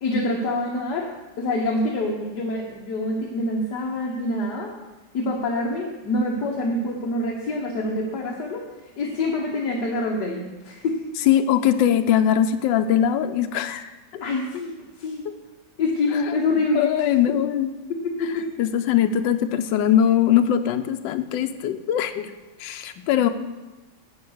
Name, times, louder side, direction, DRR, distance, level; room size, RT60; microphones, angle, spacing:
voice 1, 0.0-1.1 1.4-4.7 5.1-11.0 14.1-15.2 15.8-16.9 18.0-18.4, left 2 dB, 65° left, -1 dB, 1.7 m, -26 dB
voice 2, 11.3-13.9 15.2-15.3 16.7-17.7 18.6-22.3 22.6-23.3, left 10 dB, 85° left, 8 dB, 1.3 m, -21 dB
9.6 x 5.6 x 7.9 m, 1.2 s
omnidirectional pair, 1.9 m